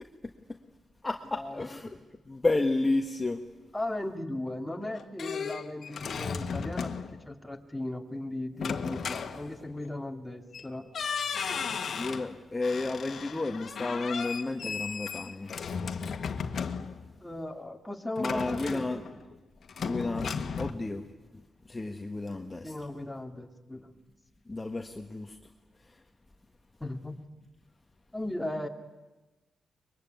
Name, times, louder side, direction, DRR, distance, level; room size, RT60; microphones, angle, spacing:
voice 1, 1.0-2.0 2.3-3.4 12.0-15.5 18.2-19.0 19.8-21.0 21.7-22.7 24.5-25.4, left 2 dB, 25° left, 4 dB, 1.6 m, -31 dB
voice 2, 3.7-10.9 17.2-19.0 22.6-24.0 26.8-27.2 28.1-28.7, left 1 dB, 10° left, 3 dB, 2.6 m, -37 dB
sound 1, 4.7-7.2 8.6-9.9 10.5-10.7 10.9-12.3 12.6-17.1 18.2-19.3 19.7-20.7, left 6 dB, 65° left, 1.6 m, -35 dB
24.0 x 22.5 x 9.5 m, 1.1 s
cardioid pair, 70°, 0 cm